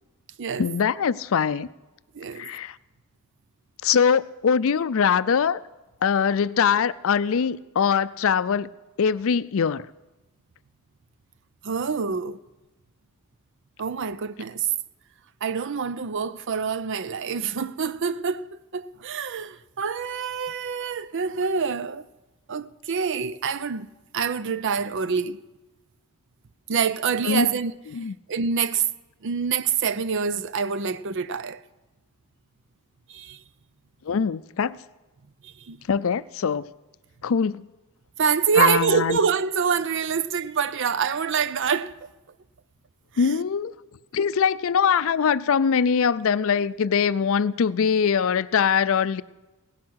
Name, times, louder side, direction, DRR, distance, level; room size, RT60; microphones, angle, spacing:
voice 1, 0.6-1.7 2.4-2.8 3.8-5.6 6.0-8.7 9.0-9.9 27.2-27.5 27.9-28.1 34.1-34.8 35.9-36.6 37.2-37.7 38.6-39.2 43.2-43.7 44.1-49.2, left 6 dB, 65° left, 0.4 m, -22 dB
voice 2, 2.1-2.5 11.6-12.4 13.8-14.7 15.4-18.5 18.7-22.1 22.5-23.9 24.1-25.4 26.7-27.7 28.0-28.8 29.2-31.6 33.1-33.4 35.4-35.8 38.2-42.1 43.1-43.3, right 6 dB, 55° right, 0.6 m, -26 dB
17.5 x 10.5 x 6.3 m
head